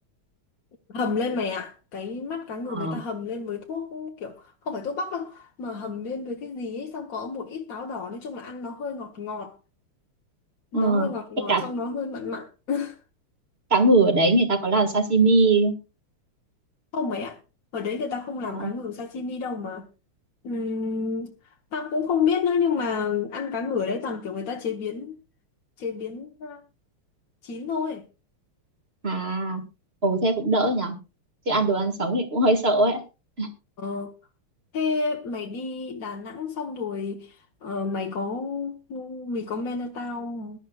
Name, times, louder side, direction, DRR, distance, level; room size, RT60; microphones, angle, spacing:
voice 1, 0.9-9.5 10.7-13.0 16.9-17.4 17.7-19.9 20.4-21.3 21.7-25.1 25.8-26.6 27.4-28.1 33.8-34.1 34.7-40.6, left 5 dB, 50° left, 1.3 m, -30 dB
voice 2, 2.7-3.0 10.7-11.1 11.5-11.6 13.7-15.7 18.5-18.7 29.0-29.6 30.0-31.0 31.5-33.0 33.4-33.5, right 2 dB, 30° right, 1.9 m, -21 dB
21.0 x 11.5 x 2.3 m
omnidirectional pair, 2.4 m